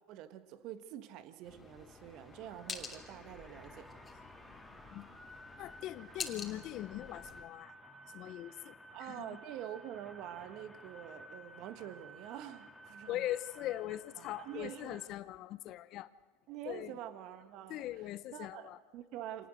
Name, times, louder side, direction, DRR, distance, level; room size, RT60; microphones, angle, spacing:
voice 1, 0.1-3.9 8.9-13.3 14.4-15.0 16.5-17.8 18.3-19.5, right 11 dB, 55° right, 10 dB, 1.7 m, -46 dB
sound 1, 1.4-7.5, left 5 dB, 20° left, 2.9 m, -48 dB
sound 2, 1.5-15.1, equal, ahead, 3.4 m, -55 dB
voice 2, 5.6-7.7 8.1-9.4 13.1-16.1 16.6-17.0 17.7-18.8, left 14 dB, 50° left, 15 dB, 1.0 m, -41 dB
26.5 x 19.0 x 6.5 m, 1.4 s
hypercardioid pair, 100°, 0 cm